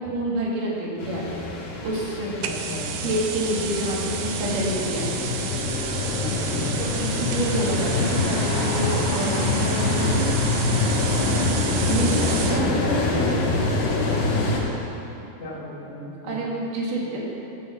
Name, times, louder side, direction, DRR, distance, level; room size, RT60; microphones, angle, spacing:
voice 1, 0.0-1.6 1.8-2.3 3.0-5.2 6.8-10.3 10.6-10.8 11.3-12.1 12.5-13.3 16.2-17.2, right 1 dB, 60° right, -4 dB, 2.7 m, -28 dB
sound 1, 1.0-14.6, left 3 dB, 90° left, 3.3 m, -25 dB
voice 2, 2.4-2.9 6.1-6.8 15.4-16.4, equal, 70° left, -5 dB, 1.4 m, -37 dB
sound 2, 2.4-12.7, right 9 dB, 80° right, 2.3 m, -32 dB
8.2 x 7.1 x 7.0 m, 3.0 s
omnidirectional pair, 4.9 m